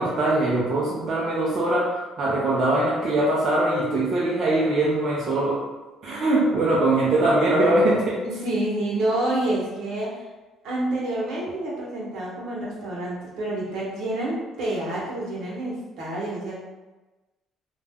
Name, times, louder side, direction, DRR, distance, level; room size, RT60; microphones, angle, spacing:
voice 1, 0.0-5.6 6.0-8.2, right 2 dB, 50° right, -6 dB, 0.5 m, -22 dB
voice 2, 8.2-10.2 10.6-16.5, right 1 dB, 75° right, -5 dB, 0.9 m, -28 dB
2.4 x 2.1 x 3.4 m, 1.2 s
cardioid pair, 120°, 0 cm